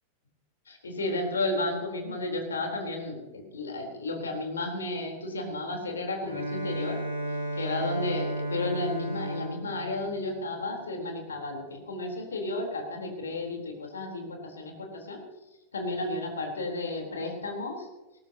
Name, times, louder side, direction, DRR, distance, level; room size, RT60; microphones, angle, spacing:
voice 1, 0.7-7.0 7.5-15.2 15.7-17.9, left 2 dB, 70° left, 2 dB, 4.0 m, -33 dB
Bowed string instrument, 6.2-11.0, right 1 dB, 75° right, 7.0 m, -34 dB
19.5 x 18.5 x 3.0 m, 1.1 s
figure-of-eight pair, 90°, 0 cm